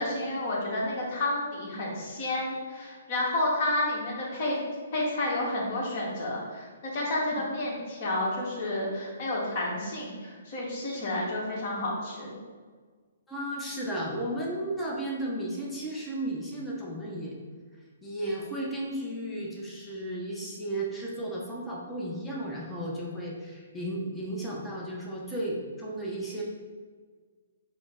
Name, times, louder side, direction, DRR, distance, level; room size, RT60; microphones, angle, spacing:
voice 1, 0.0-4.6 4.9-12.4, left 1 dB, 45° left, -4 dB, 1.2 m, -30 dB
voice 2, 13.3-17.3 18.0-26.4, right 1 dB, 5° left, -4 dB, 0.7 m, -34 dB
4.9 x 2.0 x 3.6 m, 1.5 s
hypercardioid pair, 145°, 0 cm